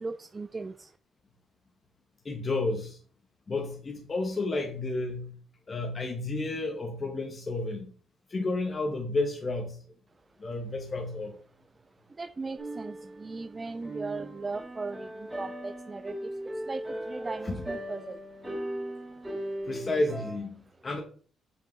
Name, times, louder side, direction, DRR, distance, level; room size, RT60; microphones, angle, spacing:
voice 1, 0.0-0.9 12.2-15.1 15.4-16.1 16.7-16.8 17.1-18.2, right 3 dB, 25° right, 0.3 m, -37 dB
voice 2, 2.2-3.0 3.5-5.3 5.7-7.9 8.3-9.8 10.4-11.3 17.4-17.6 19.7-21.0, left 2 dB, 35° left, 1.3 m, -31 dB
sound 1, 12.6-20.4, right 1 dB, 10° right, 3.0 m, -38 dB
7.8 x 5.1 x 3.4 m
cardioid pair, 90°, 0 cm